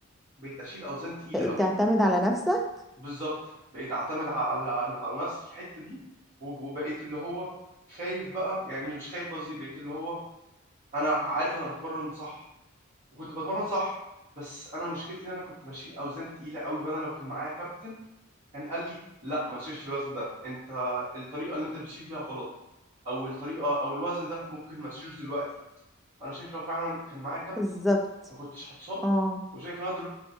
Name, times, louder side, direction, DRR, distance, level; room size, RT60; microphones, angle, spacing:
voice 1, 0.4-1.7 3.0-6.0 6.4-7.5 7.9-10.2 10.9-12.4 13.1-14.0 14.4-17.9 18.5-18.9 19.2-22.5 23.0-25.4 26.2-27.8 28.4-29.0 29.5-30.1, right 1 dB, 35° right, -14 dB, 1.4 m, -34 dB
voice 2, 1.3-2.7 27.6-28.0 29.0-29.4, equal, ahead, 1 dB, 0.4 m, -25 dB
4.4 x 2.2 x 2.7 m, 0.91 s
head